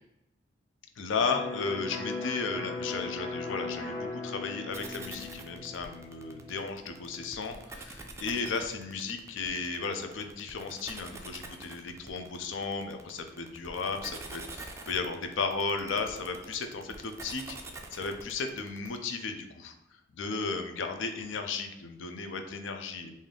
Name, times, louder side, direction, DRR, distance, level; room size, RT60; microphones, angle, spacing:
voice 1, 1.0-17.6 17.9-19.7 20.1-23.1, left 4 dB, 75° left, 6 dB, 0.5 m, -34 dB
Electric guitar, 1.3-8.9, left 3 dB, 50° left, 1.1 m, -40 dB
sound 1, 4.7-19.0, right 3 dB, 15° right, 0.3 m, -45 dB
3.7 x 2.7 x 3.4 m, 0.88 s
head